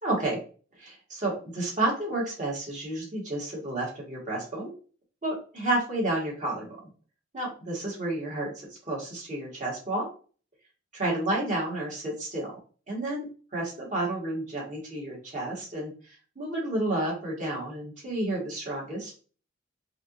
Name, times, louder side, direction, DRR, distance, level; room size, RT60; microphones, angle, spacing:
voice 1, 0.0-0.4 0.8-4.7 5.2-6.8 7.3-8.5 8.8-10.1 10.9-12.5 12.9-19.2, right 1 dB, 40° right, -3 dB, 1.9 m, -31 dB
4.9 x 3.0 x 2.6 m, 0.38 s
head